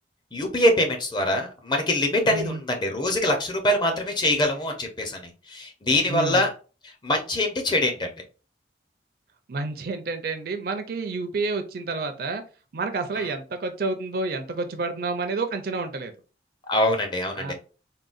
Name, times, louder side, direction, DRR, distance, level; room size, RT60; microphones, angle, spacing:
voice 1, 0.3-6.5 6.8-8.1 13.2-13.3 16.7-17.5, left 1 dB, 25° left, 3 dB, 0.5 m, -24 dB
voice 2, 2.2-2.6 6.1-6.5 9.5-12.4 12.7-16.1 17.4-17.5, right 3 dB, 55° right, 7 dB, 0.4 m, -29 dB
3.7 x 2.1 x 2.4 m, 0.35 s
head